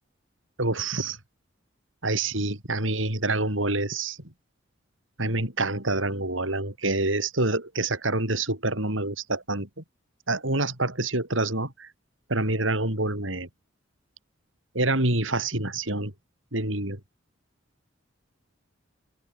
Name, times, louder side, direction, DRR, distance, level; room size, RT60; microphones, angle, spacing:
voice 1, 0.6-1.2 2.0-4.2 5.2-9.8 10.3-11.9 12.3-13.5 14.7-16.1 16.5-17.0, right 2 dB, 85° right, 6.6 m, -27 dB
open air
head